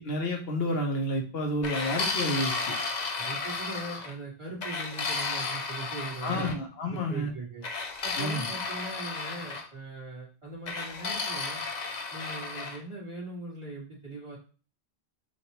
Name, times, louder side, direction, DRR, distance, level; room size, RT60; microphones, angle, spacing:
voice 1, 0.0-2.8 6.2-7.3 8.2-8.5, left 1 dB, 75° left, 2 dB, 1.2 m, -30 dB
sound 1, 1.6-4.1 4.6-6.6 7.6-9.7 10.7-12.8, left 4 dB, 50° left, 0.7 m, -33 dB
voice 2, 2.9-6.5 6.9-7.6 8.0-11.6 12.1-14.4, right 2 dB, 30° right, -5 dB, 2.2 m, -40 dB
6.2 x 2.6 x 3.0 m, 0.36 s
omnidirectional pair, 1.0 m